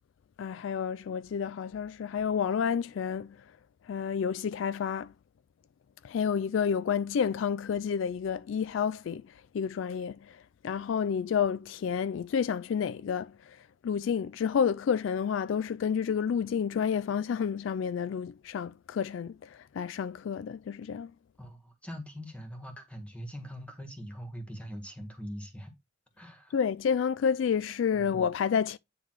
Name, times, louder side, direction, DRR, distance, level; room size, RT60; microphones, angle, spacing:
voice 1, 0.4-3.4 3.9-5.1 6.0-9.2 9.5-13.6 13.8-21.1 26.5-28.8, left 7 dB, 75° left, 0.3 m, -30 dB
voice 2, 21.4-25.7 26.2-26.6 27.9-28.1, equal, 5° left, 1.7 m, -42 dB
9.3 x 3.3 x 4.6 m
head